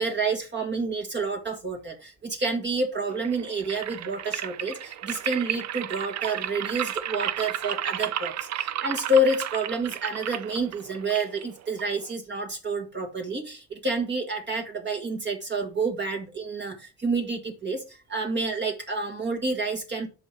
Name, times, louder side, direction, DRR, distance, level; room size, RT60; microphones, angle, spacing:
voice 1, 0.0-16.7 17.0-17.8 18.1-20.1, right 2 dB, 35° right, 3 dB, 1.8 m, -28 dB
sound 1, 3.1-12.1, right 11 dB, 60° right, 0.6 m, -33 dB
6.8 x 5.4 x 4.5 m, 0.32 s
cardioid pair, 90°, 30 cm